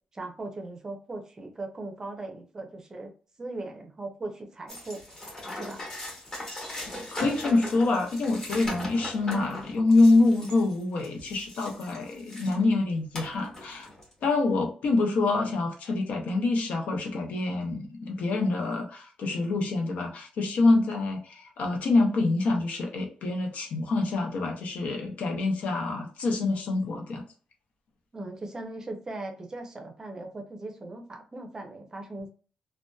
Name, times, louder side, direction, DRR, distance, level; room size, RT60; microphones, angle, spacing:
voice 1, 0.1-3.1 3.4-5.0 5.5-5.8 28.1-32.3, right 2 dB, 25° right, 3 dB, 0.5 m, -39 dB
sound 1, 4.7-12.6 13.1-14.1, left 1 dB, 25° left, 1.0 m, -39 dB
voice 2, 6.9-13.9 14.2-27.2, left 3 dB, 75° left, 3 dB, 0.6 m, -26 dB
2.6 x 2.1 x 2.2 m, 0.39 s
wide cardioid pair, 150°, 2 cm